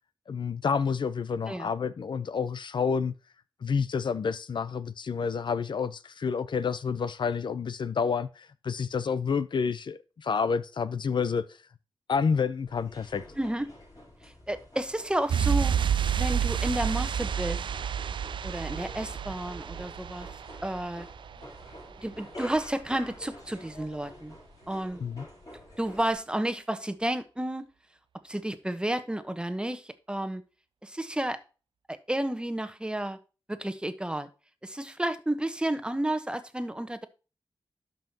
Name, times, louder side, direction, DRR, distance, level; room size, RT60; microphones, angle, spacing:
voice 1, 0.3-3.1 3.6-11.4 12.1-13.2 25.0-25.3, left 6 dB, 65° left, 0.7 m, -29 dB
sound 1, 12.7-26.2, left 1 dB, 45° left, 5.5 m, -48 dB
voice 2, 13.4-13.7 14.2-15.8 16.1-17.6 18.4-20.3 20.6-21.1 22.0-24.3 24.7-25.0 25.8-27.7 28.2-30.4 30.8-31.4 31.9-33.2 33.5-34.3 34.6-37.1, right 1 dB, 10° right, 1.1 m, -31 dB
sound 2, 15.3-21.8 22.1-22.2, right 8 dB, 70° right, 0.4 m, -30 dB
12.0 x 5.6 x 2.9 m
cardioid pair, 70°, 8 cm